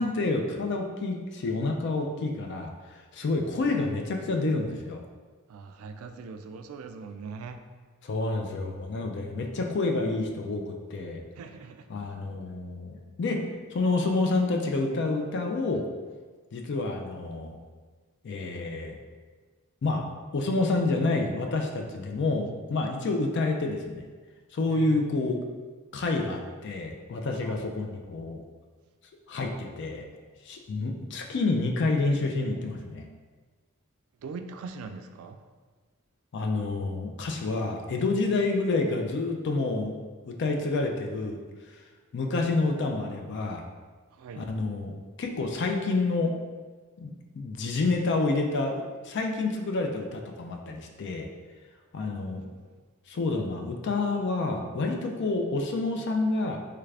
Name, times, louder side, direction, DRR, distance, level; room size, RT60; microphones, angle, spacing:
voice 1, 0.0-2.7 3.1-5.0 8.0-11.2 11.9-13.4 13.7-15.9 16.5-17.6 18.2-19.0 19.8-20.1 20.3-24.1 24.5-25.4 25.9-28.4 29.3-30.1 30.4-33.1 36.3-39.9 40.2-41.4 42.1-43.6 44.3-46.4 47.0-51.3 51.9-52.5 53.1-56.6, left 3 dB, 55° left, 3 dB, 0.4 m, -28 dB
voice 2, 5.5-7.6 11.4-11.9 24.6-25.0 27.4-27.7 34.2-35.4 44.2-44.4 52.0-52.5, right 5 dB, 80° right, 9 dB, 0.3 m, -42 dB
3.3 x 2.4 x 3.2 m, 1.4 s
head